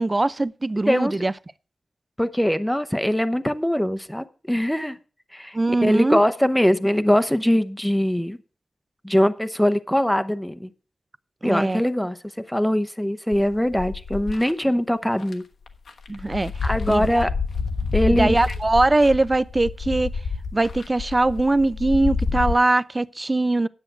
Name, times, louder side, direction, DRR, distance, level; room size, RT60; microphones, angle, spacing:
voice 1, 0.0-1.3 5.5-6.2 11.4-11.8 16.1-16.5 16.9-17.1 18.1-20.1 20.5-23.7, right 2 dB, 30° right, 0.5 m, -21 dB
voice 2, 0.9-1.2 2.2-5.0 5.3-8.4 9.0-10.7 11.4-15.4 16.6-17.3 17.9-18.5, equal, 5° left, 0.7 m, -22 dB
sound 1, 13.3-14.5 15.2-15.3 15.7-22.5, left 4 dB, 90° left, 1.3 m, -28 dB
10.0 x 7.6 x 6.0 m
wide cardioid pair, 70°, 0 cm